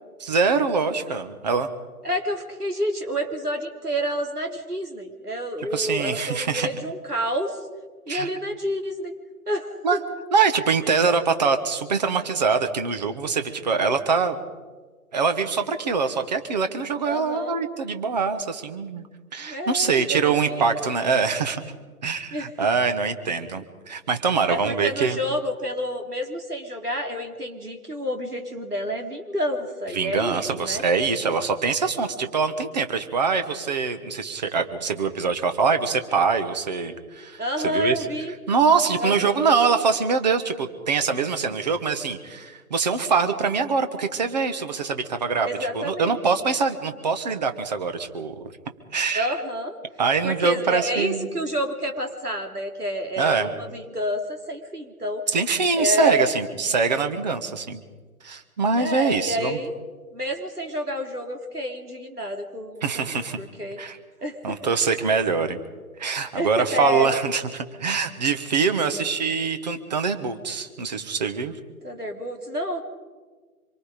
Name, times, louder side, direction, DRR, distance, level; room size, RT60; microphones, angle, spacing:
voice 1, 0.2-1.7 5.6-6.7 8.1-8.3 9.8-10.0 10.3-14.4 15.1-19.1 19.3-21.6 22.0-25.2 29.9-38.1 38.5-45.5 45.7-48.4 48.9-49.4 50.0-51.3 53.2-53.5 55.3-57.8 58.2-59.6 62.8-63.4 63.8-64.0 64.4-65.6 66.0-71.6, right 5 dB, 30° right, 8 dB, 1.4 m, -24 dB
voice 2, 2.0-7.6 8.1-9.1 9.5-10.0 17.1-17.6 19.4-20.6 22.3-22.5 24.5-30.8 37.4-38.3 39.0-39.4 45.4-46.2 49.2-49.8 50.2-55.3 55.8-56.3 58.8-59.7 60.1-63.8 64.2-64.7 66.3-67.1 71.8-72.8, equal, 90° right, 3 dB, 3.4 m, -29 dB
25.5 x 23.5 x 5.1 m, 1.4 s
figure-of-eight pair, 145°, 45 cm